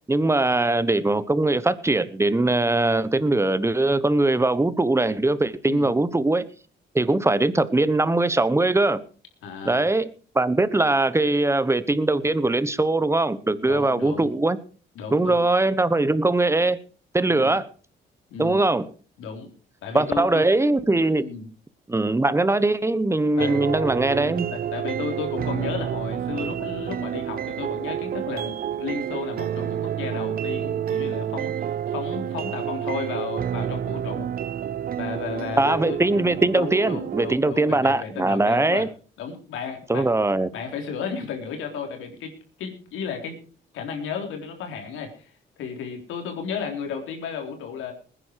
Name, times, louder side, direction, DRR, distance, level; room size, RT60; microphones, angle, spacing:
voice 1, 0.1-6.5 6.9-9.0 9.6-14.6 15.1-16.8 17.1-17.7 18.4-18.9 19.9-21.2 21.9-24.5 35.6-38.9 39.9-40.5, right 2 dB, 15° right, 1.1 m, -21 dB
voice 2, 9.4-9.9 13.7-14.3 15.0-15.4 17.2-17.6 18.3-18.6 19.2-19.5 19.8-20.4 21.2-21.4 23.4-23.6 24.5-34.3 35.0-36.0 36.5-38.9 39.2-40.1 40.5-43.4 43.7-45.3 45.6-47.9, left 6 dB, 90° left, 3.8 m, -34 dB
sound 1, 23.4-37.3, right 9 dB, 50° right, 0.6 m, -29 dB
20.0 x 10.0 x 4.7 m
cardioid pair, 90°, 20 cm